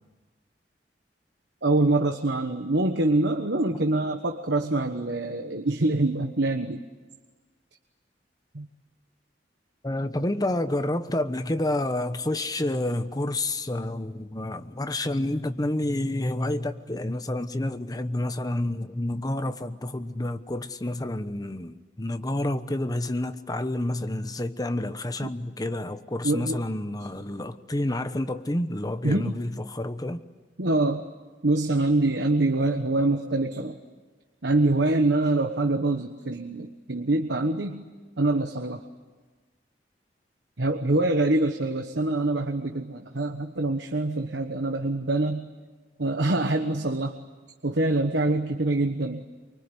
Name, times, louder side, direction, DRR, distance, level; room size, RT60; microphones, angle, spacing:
voice 1, 1.6-6.9 8.5-8.7 25.2-25.3 26.2-26.6 29.0-29.4 30.6-31.0 31.4-33.8 34.4-37.8 38.2-38.8 40.6-45.5 46.0-47.2 47.6-49.2, right 2 dB, 75° right, 1.3 m, -25 dB
voice 2, 9.8-30.2, left 1 dB, 20° left, 1.0 m, -29 dB
24.5 x 24.0 x 9.9 m
head